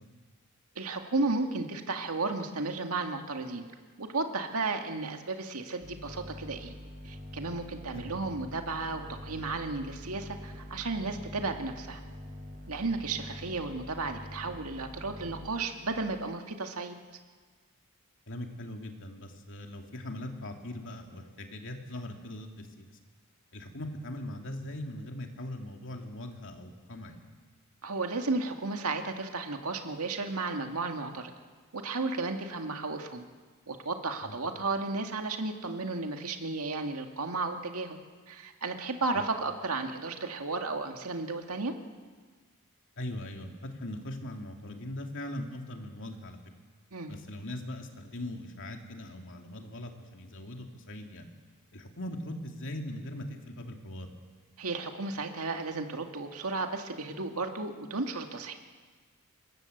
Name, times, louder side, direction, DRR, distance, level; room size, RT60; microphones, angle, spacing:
voice 1, 0.8-3.6 4.0-6.7 7.0-12.0 12.7-17.0 27.8-31.3 31.7-33.2 33.7-38.0 38.3-41.7 46.9-47.1 54.6-58.5, right 3 dB, 75° right, 4 dB, 2.1 m, -33 dB
sound 1, 5.8-16.2, left 1 dB, 40° right, 5.2 m, -45 dB
voice 2, 18.3-23.0 23.5-27.2 34.2-34.4 39.1-39.2 43.0-46.4 47.1-51.3 51.7-54.1, left 1 dB, 60° left, 3 dB, 2.8 m, -40 dB
25.5 x 21.0 x 8.0 m, 1.5 s
head